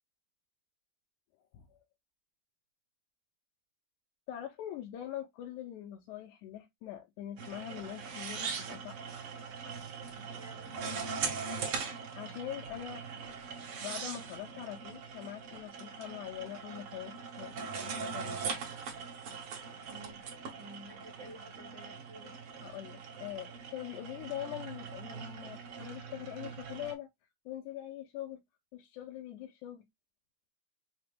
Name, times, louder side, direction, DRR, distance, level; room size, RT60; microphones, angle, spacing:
voice 1, 4.3-9.1 12.2-13.2 13.8-18.5 22.6-27.1 27.5-28.4 28.7-29.8, left 12 dB, 80° left, 2.0 m, -43 dB
sound 1, 7.4-26.9, right 5 dB, 60° right, 1.7 m, -41 dB
voice 2, 10.1-10.7 19.9-20.2 20.6-22.4, right 1 dB, 80° right, 1.0 m, -52 dB
5.0 x 2.9 x 3.4 m
omnidirectional pair, 3.6 m